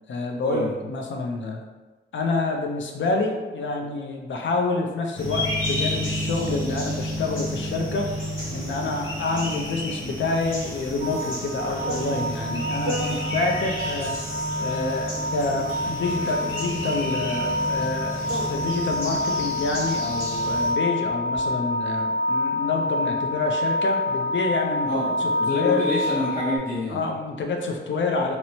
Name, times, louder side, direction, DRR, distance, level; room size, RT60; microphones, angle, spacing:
voice 1, 0.1-1.6 2.1-8.1 8.5-14.1 14.6-25.9 26.9-28.4, left 3 dB, 70° left, 2 dB, 0.4 m, -27 dB
sound 1, 5.1-20.7, equal, 90° left, 0.9 m, -31 dB
sound 2, 8.5-8.6 9.0-13.7 14.7-20.2 21.0-21.5, right 1 dB, 80° right, 0.5 m, -38 dB
sound 3, 11.0-26.6, left 1 dB, 30° right, 0.5 m, -28 dB
voice 2, 24.9-27.0, left 1 dB, 45° left, -10 dB, 0.9 m, -27 dB
2.9 x 2.0 x 2.7 m, 1.2 s
wide cardioid pair, 175°, 20 cm